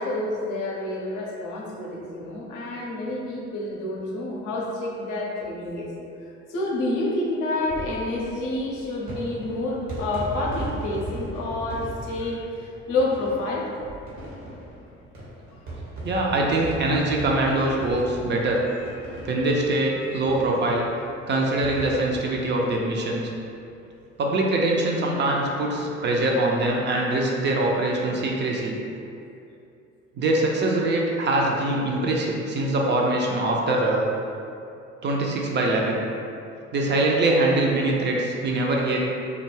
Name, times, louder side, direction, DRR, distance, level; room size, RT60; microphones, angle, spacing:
voice 1, 0.0-5.9 6.5-13.7 18.8-19.2 20.0-20.2, left 2 dB, 60° left, -2 dB, 0.6 m, -29 dB
sound 1, 7.5-23.6 23.9-24.0 24.2-24.3 25.6-25.8, right 2 dB, 65° right, 0.9 m, -38 dB
voice 2, 16.0-18.6 19.2-20.9 21.3-23.3 24.2-28.8 30.2-34.1 35.0-36.1 36.7-39.0, right 2 dB, 30° right, -1 dB, 0.4 m, -23 dB
2.3 x 2.1 x 3.1 m, 2.5 s
figure-of-eight pair, 50°, 35 cm